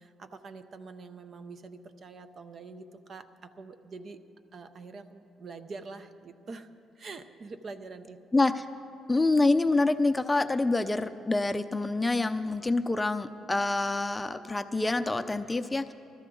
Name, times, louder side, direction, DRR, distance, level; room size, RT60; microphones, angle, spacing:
voice 1, 0.0-4.2 4.5-8.2, right 4 dB, 50° right, 9 dB, 0.8 m, -45 dB
voice 2, 8.3-8.6 9.1-15.9, left 2 dB, 15° left, 10 dB, 0.5 m, -26 dB
21.5 x 13.0 x 3.8 m, 2.5 s
cardioid pair, 75°, 0 cm